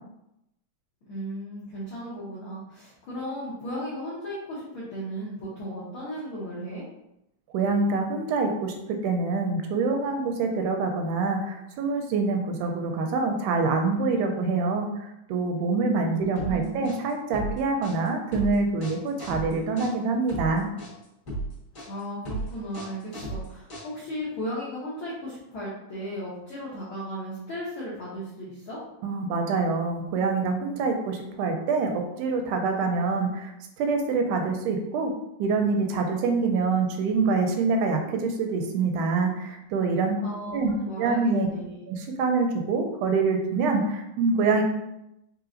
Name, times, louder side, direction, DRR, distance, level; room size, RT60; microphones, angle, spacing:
voice 1, 1.0-6.8 16.1-16.9 21.9-28.8 40.2-41.8, equal, 75° left, -8 dB, 1.2 m, -36 dB
voice 2, 7.5-20.7 29.0-33.5 33.8-35.1 35.4-40.2 40.5-40.7 41.0-41.5 41.9-44.6, right 4 dB, 85° right, 3 dB, 2.0 m, -25 dB
sound 1, 16.4-24.2, right 2 dB, 40° left, 1.2 m, -35 dB
4.8 x 3.0 x 2.5 m, 0.85 s
omnidirectional pair, 3.6 m